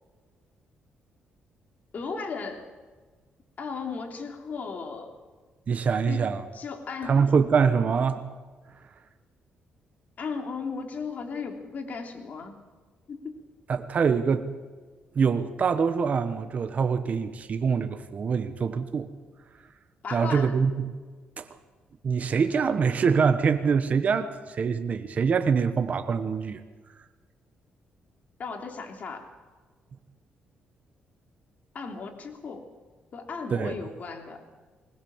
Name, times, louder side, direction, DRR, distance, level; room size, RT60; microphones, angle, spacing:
voice 1, 1.9-2.7 3.6-5.1 6.1-6.2 6.5-7.2 10.2-12.6 13.1-13.3 20.0-20.5 28.4-29.3 31.7-32.6 33.1-34.4, left 5 dB, 50° left, 3 dB, 3.4 m, -35 dB
voice 2, 5.7-6.4 7.0-8.2 13.7-14.5 15.1-19.1 20.1-20.7 21.4-21.5 22.0-26.6 33.5-33.8, right 6 dB, 45° right, 9 dB, 1.3 m, -24 dB
20.5 x 20.0 x 7.3 m, 1.4 s
cardioid pair, 105°, 3 cm